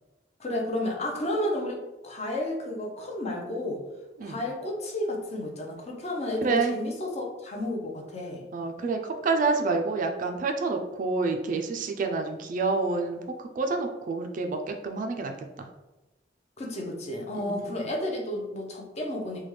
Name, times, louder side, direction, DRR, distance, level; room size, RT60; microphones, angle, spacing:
voice 1, 0.4-3.8 4.2-8.4 16.6-19.4, left 1 dB, 35° left, 1 dB, 0.6 m, -32 dB
voice 2, 6.4-6.8 8.5-15.7 17.3-17.9, right 3 dB, 45° right, 5 dB, 0.3 m, -28 dB
3.3 x 2.2 x 3.1 m, 1.1 s
head